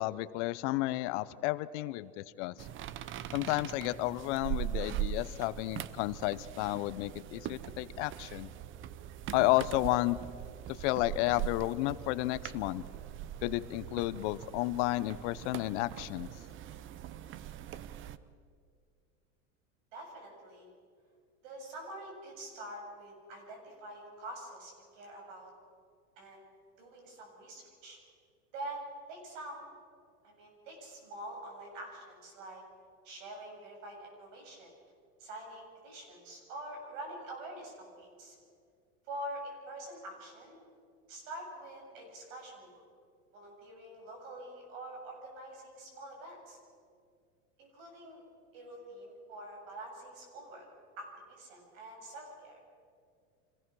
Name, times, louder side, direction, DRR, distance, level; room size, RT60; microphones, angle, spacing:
voice 1, 0.0-2.7 3.3-8.5 9.3-10.2 10.7-12.8 13.4-16.3, left 18 dB, 60° left, 16 dB, 0.8 m, -32 dB
sound 1, 2.6-18.2, right 12 dB, 30° right, 0.7 m, -41 dB
voice 2, 19.9-20.7 21.4-25.5 26.2-26.4 26.8-28.0 28.5-29.7 30.2-32.6 33.0-34.7 35.2-38.4 39.0-40.6 41.1-42.8 43.3-46.6 47.6-48.2 48.5-50.6 51.0-52.6, right 1 dB, 70° right, 1 dB, 7.8 m, -46 dB
25.5 x 17.0 x 6.3 m, 2.2 s
supercardioid pair, 130°, 40 cm